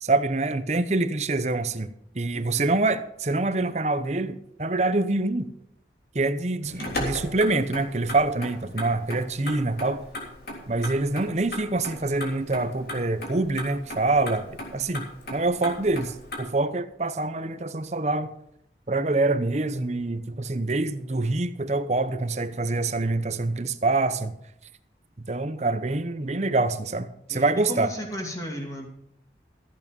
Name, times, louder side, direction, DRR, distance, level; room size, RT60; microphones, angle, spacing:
voice 1, 0.0-5.5 6.1-10.0 10.7-18.3 18.9-24.4 25.2-27.9, right 2 dB, 40° right, 11 dB, 0.8 m, -26 dB
voice 2, 2.3-2.7 27.3-28.9, equal, 20° left, 1 dB, 2.5 m, -35 dB
Motor vehicle (road), 6.6-16.4, left 1 dB, 60° left, 3.4 m, -37 dB
14.5 x 8.4 x 5.3 m, 0.76 s
head